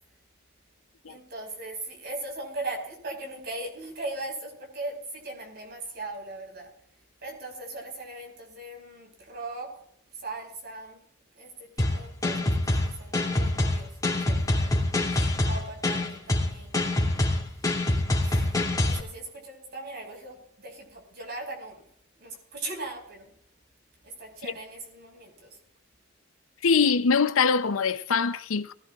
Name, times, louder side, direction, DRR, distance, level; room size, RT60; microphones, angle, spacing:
voice 1, 1.1-6.7 7.2-9.7 10.1-11.0 11.3-14.9 15.1-16.8 17.0-17.2 17.5-21.8 22.2-23.3 24.0-25.6, right 2 dB, 55° right, 5.2 m, -39 dB
sound 1, 11.8-19.0, left 1 dB, 20° left, 2.7 m, -25 dB
voice 2, 26.6-28.7, left 5 dB, 75° left, 0.6 m, -23 dB
21.5 x 16.0 x 2.4 m
head